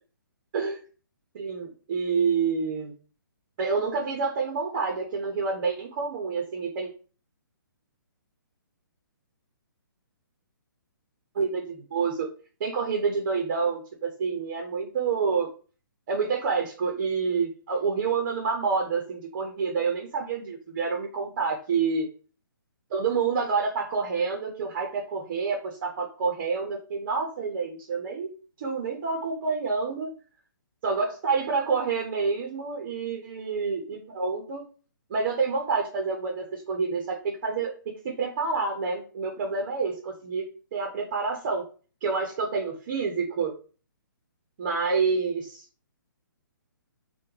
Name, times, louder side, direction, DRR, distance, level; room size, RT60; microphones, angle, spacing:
voice 1, 1.3-2.9 3.6-6.9 11.3-12.3 12.6-15.5 16.1-22.1 22.9-28.3 28.6-30.1 30.8-34.6 35.1-37.7 38.0-40.5 40.7-41.6 42.0-43.5 44.6-45.6, right 5 dB, 35° right, 1 dB, 0.6 m, -28 dB
3.4 x 2.1 x 3.1 m, 0.38 s
hypercardioid pair, 155°, 12 cm